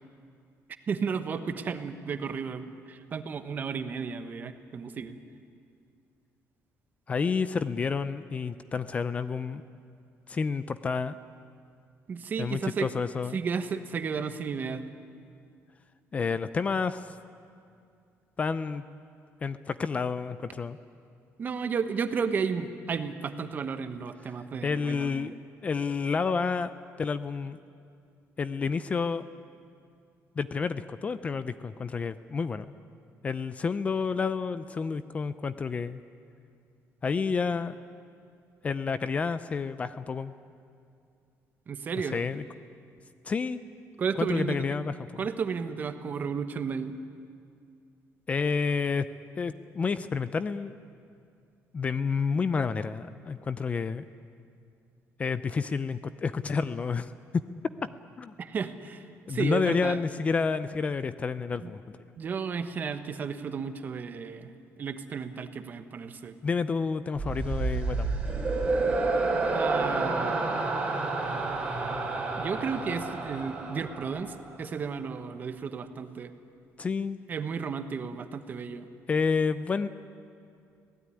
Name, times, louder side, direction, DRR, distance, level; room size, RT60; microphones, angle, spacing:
voice 1, 0.9-5.1 12.1-12.9 13.3-14.8 21.4-25.3 41.7-42.2 44.0-44.8 45.2-46.9 58.4-60.0 61.6-61.8 62.2-64.5 64.8-66.4 69.5-70.4 72.4-76.3 77.3-78.9, right 6 dB, 35° right, 9 dB, 1.2 m, -33 dB
voice 2, 7.1-9.6 10.3-11.2 12.4-13.4 16.1-17.1 18.4-18.8 19.4-20.8 24.6-25.3 25.6-26.7 27.0-27.6 28.4-29.2 30.4-32.7 33.2-36.0 37.0-37.7 38.6-40.3 42.0-42.4 43.2-43.6 44.2-45.2 48.3-49.1 49.4-50.7 51.7-54.0 55.2-57.1 58.2-58.3 59.3-61.8 66.4-68.2 76.8-77.2 79.1-79.9, left 5 dB, 25° left, 13 dB, 0.5 m, -29 dB
sound 1, 67.2-74.5, right 3 dB, 15° right, 3.4 m, -29 dB
25.5 x 17.5 x 9.8 m, 2.4 s
cardioid pair, 165°, 6 cm